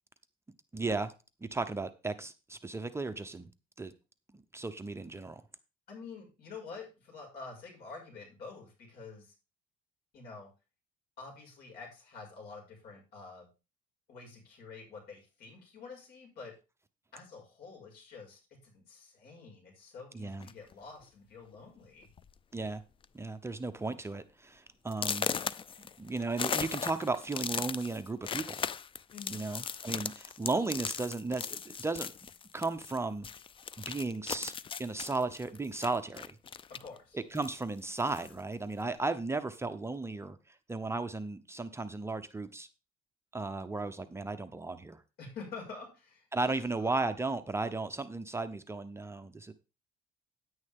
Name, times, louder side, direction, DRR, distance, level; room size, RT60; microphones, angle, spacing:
voice 1, 0.7-1.1 1.4-3.5 3.8-3.9 4.3-5.4 20.1-20.5 22.5-22.8 23.1-25.3 26.0-28.6 29.3-32.1 32.5-33.3 33.9-36.4 37.1-42.7 43.3-45.0 46.3-49.5, right 3 dB, 15° right, 10 dB, 0.7 m, -35 dB
voice 2, 5.9-9.3 10.1-10.5 11.2-13.5 14.1-16.5 17.1-22.1 29.1-29.4 36.7-37.2 45.2-46.9, left 4 dB, 70° left, 0 dB, 5.8 m, -48 dB
sound 1, 20.4-20.7 21.5-21.6 22.0-22.3 22.6-23.0 23.5-23.6 24.1-24.2 24.9-33.0 33.2-37.0 37.3-38.4, left 7 dB, 30° left, 0.5 m, -38 dB
9.6 x 9.5 x 3.6 m, 0.30 s
cardioid pair, 110°, 17 cm